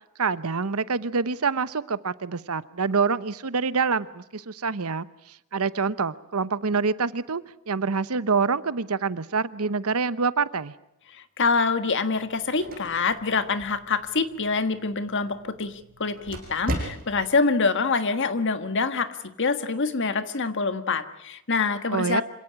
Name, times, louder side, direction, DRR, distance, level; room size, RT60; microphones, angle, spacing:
voice 1, 0.2-10.7 21.9-22.2, right 5 dB, 75° right, 15 dB, 0.9 m, -26 dB
voice 2, 11.4-22.2, left 4 dB, 55° left, 10 dB, 1.6 m, -25 dB
sound 1, 12.2-17.4, right 1 dB, 40° right, 6.6 m, -38 dB
26.5 x 17.0 x 9.8 m, 0.84 s
head